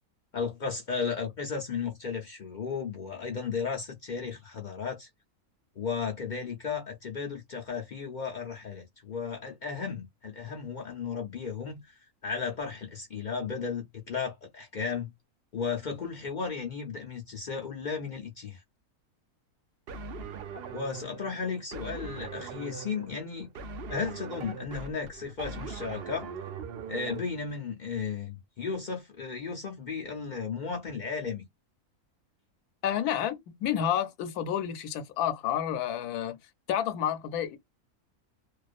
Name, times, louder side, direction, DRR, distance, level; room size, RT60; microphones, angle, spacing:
voice 1, 0.3-5.1 5.8-15.1 15.5-18.6 20.7-23.5 23.9-26.3 26.9-31.4, left 5 dB, 60° left, 0.4 m, -34 dB
sound 1, 19.9-27.2, right 5 dB, 80° right, 0.5 m, -41 dB
voice 2, 32.8-36.4 36.7-37.6, left 9 dB, 85° left, 1.1 m, -30 dB
2.4 x 2.3 x 2.4 m
omnidirectional pair, 1.6 m